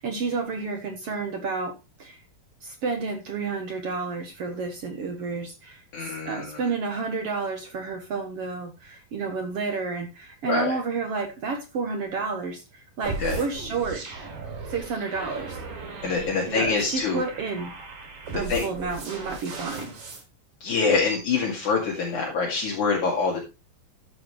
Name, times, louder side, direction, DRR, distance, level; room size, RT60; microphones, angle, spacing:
voice 1, 0.0-2.2 2.6-14.0 14.7-15.6 16.5-17.7 18.3-19.9, right 4 dB, 60° right, 5 dB, 1.7 m, -30 dB
voice 2, 5.9-6.6 10.5-10.8 13.2-13.4 16.0-17.2 18.5-18.6 20.6-23.4, left 4 dB, 60° left, -2 dB, 3.5 m, -25 dB
sound 1, 13.0-20.2, right 4 dB, 75° right, 5.4 m, -37 dB
13.0 x 8.0 x 3.2 m, 0.27 s
omnidirectional pair, 4.0 m